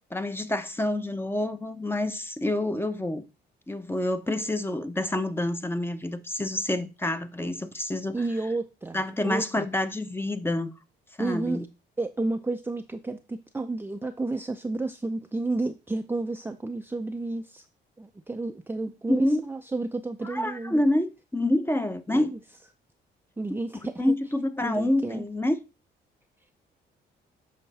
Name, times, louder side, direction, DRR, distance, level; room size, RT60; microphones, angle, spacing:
voice 1, 0.1-3.2 3.7-8.2 8.9-10.7 11.2-11.7 19.1-19.4 20.2-22.3 24.0-25.6, left 1 dB, 10° left, 0.8 m, -27 dB
voice 2, 8.1-9.7 11.2-11.7 12.0-17.6 18.0-20.8 22.1-22.4 23.4-24.1 24.6-25.3, right 2 dB, 10° right, 0.5 m, -31 dB
7.7 x 5.0 x 4.1 m
cardioid pair, 90°, 20 cm